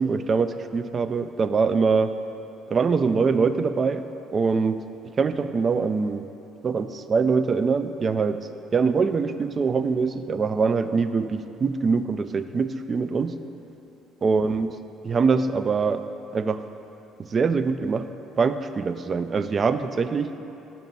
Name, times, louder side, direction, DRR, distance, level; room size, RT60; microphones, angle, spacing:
voice 1, 0.0-2.1 2.7-4.1 4.3-4.8 5.1-6.3 6.6-13.3 14.2-14.8 15.0-16.0 16.3-16.6 17.2-18.1 18.4-20.3, right 5 dB, 40° right, 11 dB, 0.3 m, -23 dB
5.9 x 4.1 x 5.4 m, 2.9 s
hypercardioid pair, 65°, 0 cm